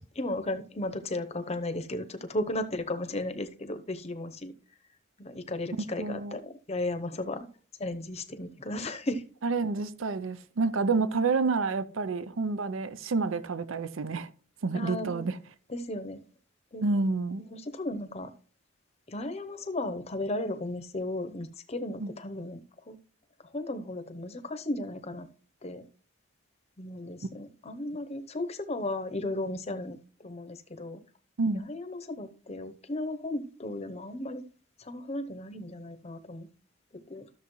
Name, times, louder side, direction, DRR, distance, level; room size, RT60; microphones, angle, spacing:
voice 1, 0.2-4.5 5.2-7.5 7.8-9.2 14.7-15.3 15.7-16.2 16.7-16.8 17.5-18.3 19.1-22.6 22.9-23.0 23.5-25.3 25.6-25.8 26.8-30.0 30.2-31.0 31.5-34.4 34.8-36.5 37.1-37.3, left 1 dB, 30° left, 0.8 m, -35 dB
voice 2, 5.8-6.4 9.4-14.3 14.6-15.4 16.8-17.4 22.0-22.1 31.4-31.6, right 4 dB, 75° right, 0.6 m, -29 dB
13.0 x 6.7 x 3.1 m
head